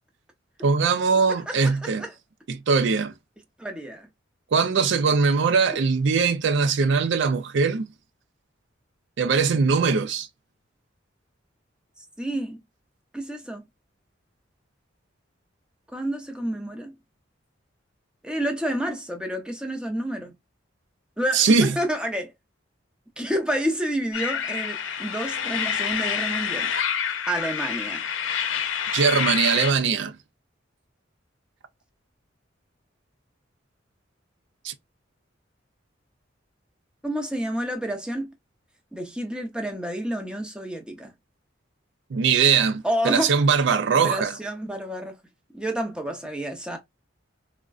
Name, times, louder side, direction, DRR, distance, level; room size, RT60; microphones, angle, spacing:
voice 1, 0.6-2.0 2.5-3.1 4.5-7.9 9.2-10.3 21.3-21.7 28.9-30.2 34.6-34.7 42.1-44.4, right 5 dB, 65° right, 0.4 m, -21 dB
voice 2, 1.5-2.1 3.6-4.1 12.2-12.6 13.1-13.7 15.9-16.9 18.2-20.3 21.2-22.3 23.2-26.7 27.3-28.0 37.0-38.3 38.9-41.1 42.8-43.3 43.9-45.2 45.5-46.8, right 1 dB, 5° right, 0.7 m, -29 dB
sound 1, 24.1-29.7, left 7 dB, 85° left, 0.6 m, -28 dB
3.6 x 2.1 x 2.3 m
head